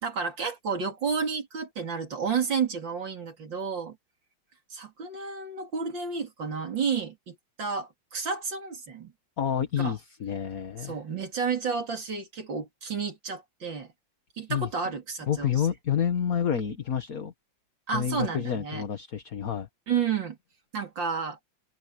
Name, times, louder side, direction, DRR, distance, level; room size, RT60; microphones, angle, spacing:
voice 1, 0.0-4.0 4.7-9.1 9.8-10.0 10.8-13.9 14.4-15.6 17.9-18.8 19.9-20.4 20.7-21.4, right 6 dB, 75° right, 3.9 m, -31 dB
voice 2, 9.4-11.0 14.5-14.7 15.3-17.3 17.9-19.7, left 8 dB, 50° left, 1.8 m, -29 dB
omnidirectional pair, 2.0 m